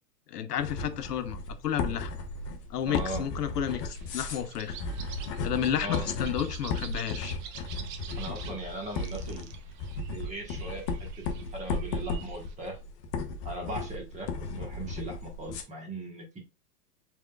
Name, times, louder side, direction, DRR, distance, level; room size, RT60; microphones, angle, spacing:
voice 1, 0.3-2.1 2.7-4.7 5.4-7.4, left 9 dB, 80° left, 0.8 m, -31 dB
sound 1, 0.6-15.6, left 3 dB, 25° left, 0.4 m, -35 dB
voice 2, 2.8-3.2 5.8-6.1 8.1-9.5 10.1-11.1 11.3-12.8 13.4-16.4, right 2 dB, 15° right, 1.2 m, -39 dB
sound 2, 3.6-12.5, right 9 dB, 30° right, 0.5 m, -47 dB
5.0 x 3.6 x 2.3 m
hypercardioid pair, 120°, 47 cm